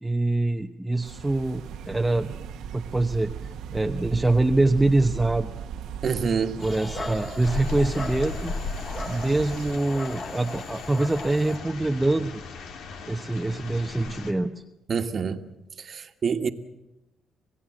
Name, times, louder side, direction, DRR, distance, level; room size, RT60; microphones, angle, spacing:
voice 1, 0.0-2.3 2.7-3.3 3.7-5.5 6.6-8.5 9.1-12.4 13.1-14.5, right 2 dB, 10° right, 1.0 m, -24 dB
sound 1, 1.0-9.8, right 8 dB, 85° right, 1.4 m, -37 dB
voice 2, 6.0-6.6 14.9-15.4 15.8-16.5, right 6 dB, 50° right, 1.6 m, -26 dB
Dog, 6.6-11.6, left 2 dB, 35° left, 4.1 m, -38 dB
sound 2, 7.4-14.3, left 5 dB, 80° left, 2.6 m, -37 dB
28.0 x 17.0 x 7.8 m
cardioid pair, 90°, 0 cm